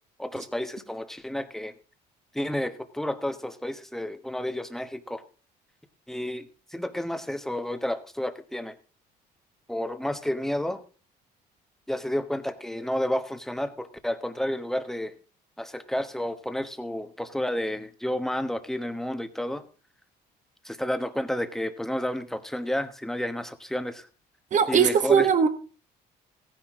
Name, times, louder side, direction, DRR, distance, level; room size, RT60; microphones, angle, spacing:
voice 1, 0.2-1.7 2.3-5.2 6.1-8.7 9.7-10.8 11.9-15.1 15.6-19.6 20.6-24.1 24.7-25.3, left 1 dB, ahead, 1.1 m, -31 dB
voice 2, 24.5-25.5, right 7 dB, 45° right, 1.6 m, -20 dB
15.5 x 10.0 x 3.7 m
cardioid pair, 110°, 17 cm